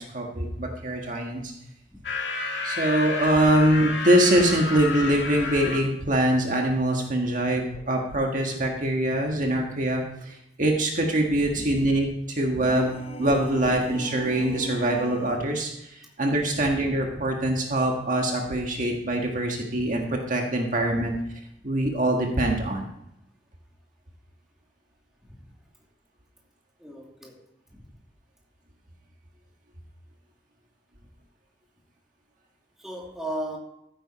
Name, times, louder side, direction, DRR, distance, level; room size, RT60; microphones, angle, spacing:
voice 1, 0.0-1.5 2.6-12.9 13.2-21.1 21.6-22.8, right 1 dB, 45° right, 1 dB, 1.7 m, -24 dB
sound 1, 2.0-5.8, left 3 dB, 85° left, 2.2 m, -31 dB
voice 2, 11.5-12.0 16.5-16.9 17.4-17.5 20.9-21.1 26.8-27.4 27.7-27.9 32.8-33.6, right 1 dB, 5° right, -2 dB, 2.8 m, -37 dB
sound 2, 12.5-15.5, equal, 35° left, 1.1 m, -38 dB
15.0 x 9.2 x 4.3 m, 0.80 s
head